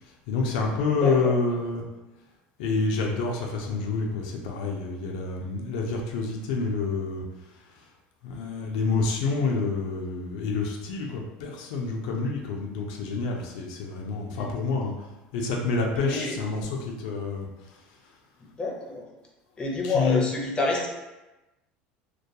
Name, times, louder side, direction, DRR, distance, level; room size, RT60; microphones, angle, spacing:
voice 1, 0.3-1.8 2.6-7.2 7.5-7.8 8.2-15.1 15.3-17.8 19.8-20.2, left 4 dB, 85° left, 0 dB, 0.4 m, -28 dB
voice 2, 0.9-1.3 14.4-14.5 16.0-16.4 18.4-19.0 19.6-20.9, left 2 dB, 20° left, -2 dB, 0.6 m, -28 dB
2.2 x 2.2 x 2.7 m, 1.1 s
supercardioid pair, 115°, 4 cm